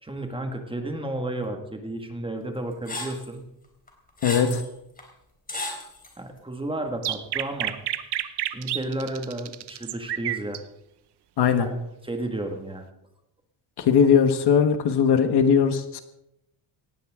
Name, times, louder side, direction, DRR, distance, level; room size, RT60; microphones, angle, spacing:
voice 1, 0.0-3.5 6.2-7.8 8.5-10.6 11.6-11.7 12.0-12.8, right 1 dB, 10° right, 4 dB, 1.9 m, -32 dB
sound 1, 2.9-3.3 3.9-4.6 5.0-5.1 5.5-6.1, left 2 dB, 20° left, 3.8 m, -33 dB
voice 2, 4.2-4.6 11.4-11.7 13.9-16.0, left 7 dB, 55° left, 9 dB, 1.5 m, -19 dB
sound 2, 7.0-10.6, right 12 dB, 55° right, 1.0 m, -29 dB
18.5 x 15.5 x 3.7 m, 0.84 s
cardioid pair, 140°, 46 cm